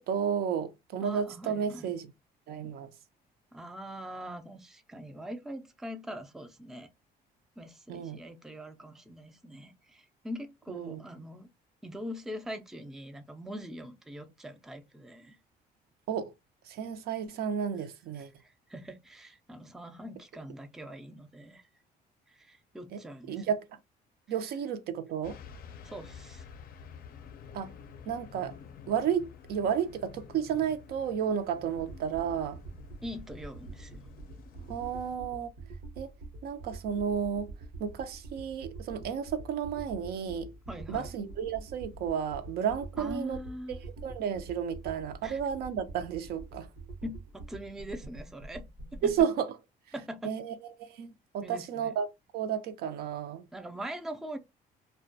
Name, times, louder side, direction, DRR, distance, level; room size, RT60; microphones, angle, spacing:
voice 1, 0.0-2.1 2.5-2.9 7.9-8.2 10.7-11.0 16.1-16.3 16.6-18.3 22.9-23.0 23.3-23.8 24.3-25.4 27.5-27.8 28.1-28.6 28.9-32.6 34.7-35.5 36.0-36.1 36.4-37.5 37.8-40.5 40.9-43.4 43.7-43.8 44.0-46.7 49.0-49.5 50.2-52.1 52.3-53.4, right 8 dB, 70° right, 0.4 m, -32 dB
voice 2, 1.0-1.9 3.5-6.9 7.6-11.5 11.8-15.4 18.4-21.7 22.3-23.5 25.8-26.5 33.0-34.1 40.7-41.1 43.0-43.8 45.2-45.4 47.0-48.7 48.9-49.1 49.9-50.3 51.4-52.0 53.5-54.4, equal, ahead, 0.3 m, -42 dB
sound 1, 25.2-35.2, left 6 dB, 60° left, 0.4 m, -50 dB
sound 2, 31.8-49.2, right 3 dB, 85° right, 0.8 m, -46 dB
2.3 x 2.1 x 2.5 m
cardioid pair, 110°, 17 cm